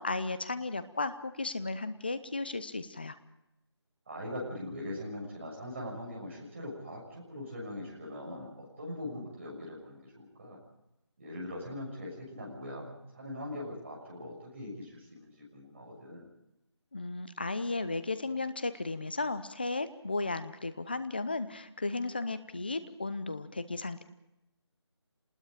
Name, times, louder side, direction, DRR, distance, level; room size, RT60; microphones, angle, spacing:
voice 1, 0.0-3.2 16.9-24.0, left 3 dB, 20° left, 12 dB, 0.7 m, -35 dB
voice 2, 4.1-10.6 11.2-16.3, left 1 dB, 25° right, -3 dB, 6.5 m, -41 dB
27.0 x 20.0 x 5.0 m, 0.86 s
figure-of-eight pair, 175°, 15 cm